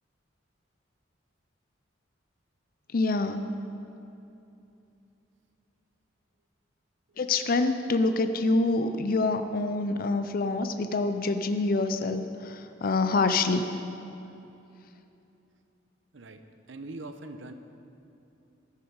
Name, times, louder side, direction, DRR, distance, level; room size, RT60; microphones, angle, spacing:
voice 1, 2.9-3.5 7.2-13.6, left 3 dB, 50° left, 8 dB, 0.5 m, -26 dB
voice 2, 16.1-17.5, right 2 dB, 75° right, 8 dB, 0.8 m, -42 dB
12.5 x 11.5 x 4.7 m, 2.8 s
head